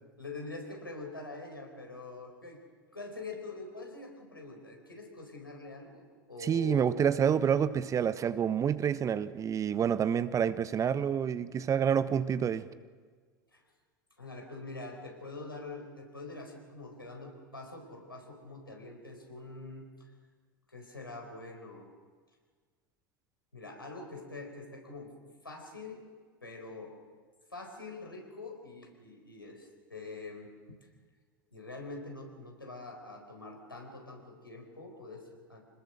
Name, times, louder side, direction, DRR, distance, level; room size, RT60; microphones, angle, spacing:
voice 1, 0.2-2.6 2.9-7.0 13.5-13.7 14.2-20.1 20.7-21.9 23.5-25.1 25.4-26.0 26.4-27.0 27.5-30.8 31.5-35.6, left 3 dB, 85° left, 1 dB, 4.6 m, -45 dB
voice 2, 6.4-12.7, right 8 dB, 30° right, 15 dB, 0.9 m, -28 dB
26.5 x 20.0 x 6.6 m, 1.5 s
figure-of-eight pair, 75°, 11 cm